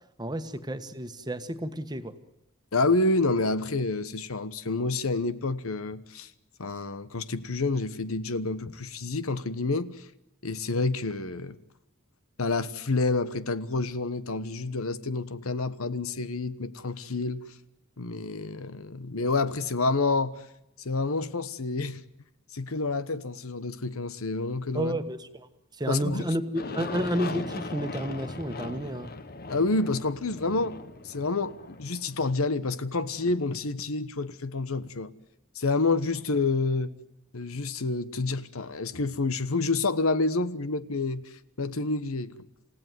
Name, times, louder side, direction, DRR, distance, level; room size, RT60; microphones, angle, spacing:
voice 1, 0.2-2.1 24.7-25.5 25.8-29.1, equal, 20° right, 1.4 m, -31 dB
voice 2, 2.7-6.3 6.6-10.1 10.4-11.6 12.4-17.4 18.0-20.4 20.8-22.0 22.5-25.0 25.9-26.3 29.5-30.8 31.0-35.1 35.5-36.9 37.3-41.2 41.6-42.3, left 3 dB, 85° left, 1.2 m, -28 dB
Aircraft, 26.5-33.2, left 2 dB, 45° left, 1.3 m, -38 dB
28.5 x 16.5 x 9.3 m
head